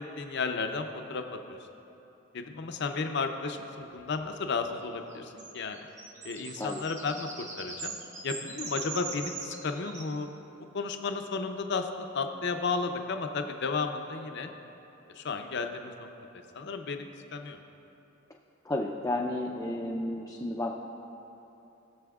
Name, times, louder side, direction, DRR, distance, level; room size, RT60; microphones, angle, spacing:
voice 1, 0.2-1.2 1.5-1.6 2.3-5.8 6.2-7.9 8.2-10.3 10.7-14.5 15.2-16.1 16.5-17.0 17.3-17.6, left 4 dB, 60° left, 6 dB, 0.6 m, -33 dB
sound 1, 5.1-10.2, right 4 dB, 35° right, 1.2 m, -41 dB
voice 2, 18.6-20.8, left 1 dB, 15° left, -1 dB, 0.4 m, -32 dB
19.5 x 6.9 x 2.4 m, 2.9 s
head